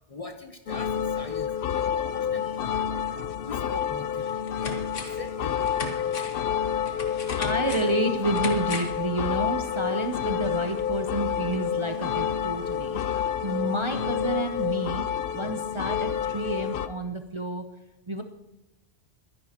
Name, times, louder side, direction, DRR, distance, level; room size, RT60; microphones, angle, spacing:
voice 1, 0.0-4.9 5.1-6.8, left 2 dB, 30° left, 6 dB, 0.9 m, -43 dB
sound 1, 0.7-16.9, left 8 dB, 60° left, 0.7 m, -29 dB
sound 2, 3.7-3.8 4.2-5.3 5.6-9.1 9.4-9.5, left 3 dB, 90° left, 1.8 m, -37 dB
voice 2, 7.4-15.1 15.3-17.7 18.1-18.2, right 1 dB, 30° right, 5 dB, 0.6 m, -30 dB
23.0 x 11.0 x 2.9 m, 0.97 s
omnidirectional pair, 1.2 m